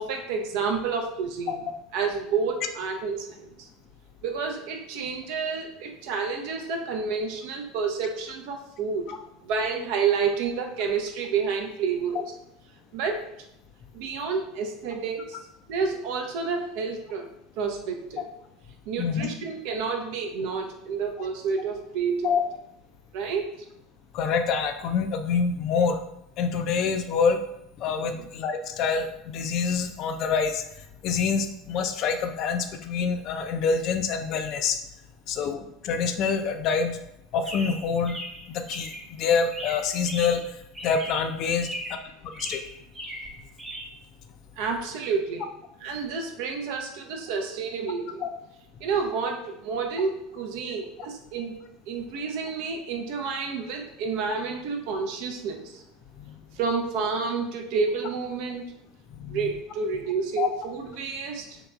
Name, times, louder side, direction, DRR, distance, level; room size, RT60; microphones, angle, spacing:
voice 1, 0.0-1.6 1.9-3.7 4.2-9.1 9.4-12.3 12.9-13.2 13.9-15.4 15.7-17.3 17.6-18.2 18.9-22.3 23.1-23.7 28.1-28.2 44.6-45.5 45.8-48.2 48.8-51.6 51.9-55.8 56.5-58.6 59.3-61.6, right 5 dB, 55° right, 3 dB, 0.4 m, -29 dB
voice 2, 19.0-19.3 22.2-22.5 24.1-26.0 26.4-27.4 27.8-30.6 31.0-34.8 35.3-37.0 37.3-38.2 38.5-38.9 39.2-40.4 40.8-41.7 42.4-42.6 48.2-48.3 59.2-59.5 60.4-60.5, left 5 dB, 45° left, 7 dB, 0.3 m, -26 dB
Chirp tweet, 37.5-39.1 39.5-40.5 40.7-41.3 41.6-42.1 42.3-43.8, equal, 15° right, 0.8 m, -38 dB
3.7 x 2.8 x 2.2 m, 0.80 s
figure-of-eight pair, 75°, 0 cm